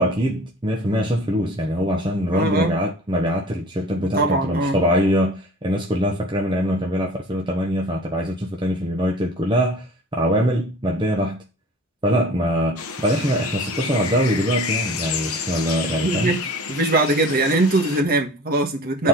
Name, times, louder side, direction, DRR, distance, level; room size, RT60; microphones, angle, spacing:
voice 1, 0.0-9.9 10.1-11.4 12.0-16.4 19.0-19.1, equal, 20° right, 1.2 m, -22 dB
voice 2, 2.3-2.7 4.0-4.8 16.0-16.4 16.7-19.1, right 2 dB, 45° right, 1.6 m, -21 dB
sound 1, 12.8-18.0, left 7 dB, 80° left, 1.1 m, -30 dB
10.5 x 4.4 x 3.9 m
head